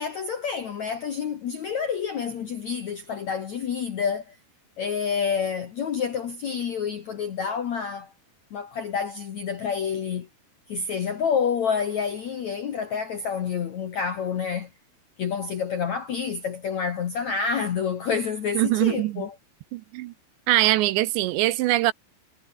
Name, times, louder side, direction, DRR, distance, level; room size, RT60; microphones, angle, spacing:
voice 1, 0.0-4.4 4.8-8.1 8.5-10.3 10.7-14.7 15.2-19.4, left 6 dB, 65° left, 1.8 m, -28 dB
voice 2, 18.6-19.2 19.7-20.1 20.5-21.9, right 16 dB, 80° right, 2.8 m, -22 dB
omnidirectional pair, 5.6 m